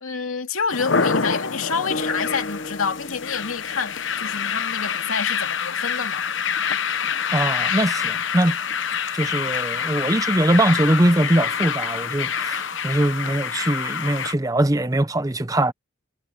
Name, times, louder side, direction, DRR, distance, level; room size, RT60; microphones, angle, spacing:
voice 1, 0.0-6.2, left 5 dB, 85° left, 2.5 m, -28 dB
sound 1, 0.7-14.3, left 6 dB, 60° left, 1.0 m, -26 dB
Acoustic guitar, 1.9-4.7, left 1 dB, 45° left, 2.4 m, -36 dB
voice 2, 7.3-8.6 9.1-15.7, right 1 dB, 15° right, 0.7 m, -21 dB
head